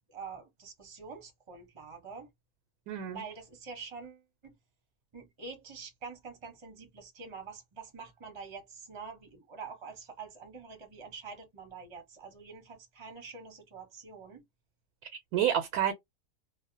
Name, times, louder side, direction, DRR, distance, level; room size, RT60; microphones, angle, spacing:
voice 1, 0.1-2.3 3.1-4.5 5.1-14.4, right 5 dB, 30° right, 0.6 m, -46 dB
voice 2, 2.9-3.2 15.0-15.9, right 10 dB, 90° right, 1.1 m, -29 dB
2.6 x 2.1 x 2.5 m
omnidirectional pair, 1.5 m